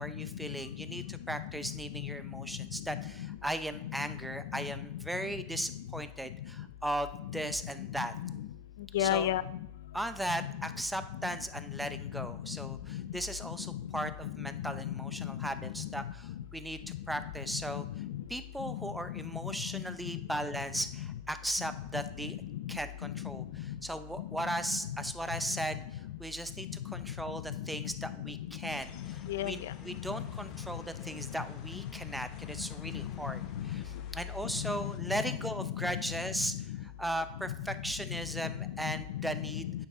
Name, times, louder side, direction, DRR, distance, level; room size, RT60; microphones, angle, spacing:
voice 1, 0.0-8.1 9.0-9.3 9.9-16.8 17.1-17.9 18.3-22.4 22.7-39.7, right 1 dB, 5° right, 10 dB, 0.6 m, -37 dB
voice 2, 7.8-8.5 8.9-9.6 12.1-12.3 12.7-13.0 13.7-15.5 15.7-15.9 17.2-17.3 17.5-18.2 18.7-18.8 19.4-20.2 21.0-21.1 22.2-22.3 23.0-23.3 23.7-23.8 24.7-25.0 25.5-25.6 27.6-28.3 29.0-30.3 32.9-33.1 33.6-33.8 34.5-36.8 37.5-37.6 38.4-38.5 38.8-39.9, left 12 dB, 75° left, 16 dB, 0.4 m, -36 dB
sound 1, 28.7-35.0, left 6 dB, 45° left, 1.1 m, -51 dB
9.1 x 6.8 x 3.7 m, 0.83 s
hypercardioid pair, 110°, 0 cm